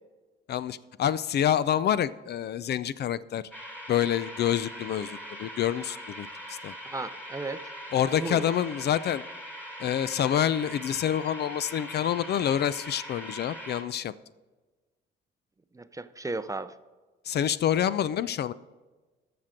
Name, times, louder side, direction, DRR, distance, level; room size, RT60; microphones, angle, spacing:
voice 1, 0.5-3.4 3.9-6.7 7.9-9.2 9.8-14.1 17.3-18.5, left 10 dB, 55° left, 17 dB, 0.4 m, -27 dB
sound 1, 3.5-13.8, equal, 10° left, 3.1 m, -41 dB
voice 2, 6.8-7.6 8.1-8.5 15.7-16.7, right 3 dB, 15° right, 12 dB, 0.5 m, -35 dB
14.0 x 6.0 x 5.1 m, 1.2 s
cardioid pair, 90°, 20 cm